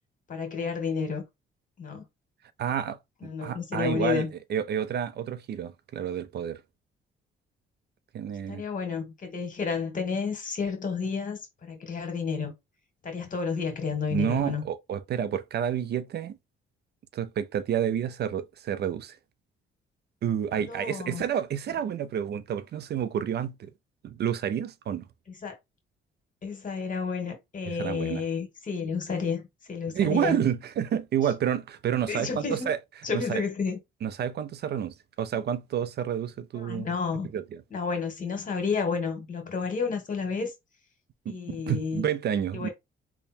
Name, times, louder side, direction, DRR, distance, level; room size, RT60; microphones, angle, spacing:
voice 1, 0.3-1.2 1.8-2.0 3.2-4.3 8.5-12.5 13.0-14.6 20.5-21.2 25.4-25.5 26.4-29.4 29.7-30.4 32.1-32.7 33.0-33.8 36.5-37.3 37.7-40.5 41.3-42.0 42.5-42.7, left 5 dB, 40° left, 1.7 m, -31 dB
voice 2, 2.6-4.2 4.5-6.6 8.1-8.6 14.1-16.4 17.1-19.2 20.2-23.7 24.0-25.1 27.8-28.2 29.9-32.8 33.1-33.4 34.0-36.9 37.3-37.4 41.3-42.7, right 9 dB, 55° right, 0.4 m, -29 dB
3.4 x 2.2 x 4.3 m
cardioid pair, 90°, 20 cm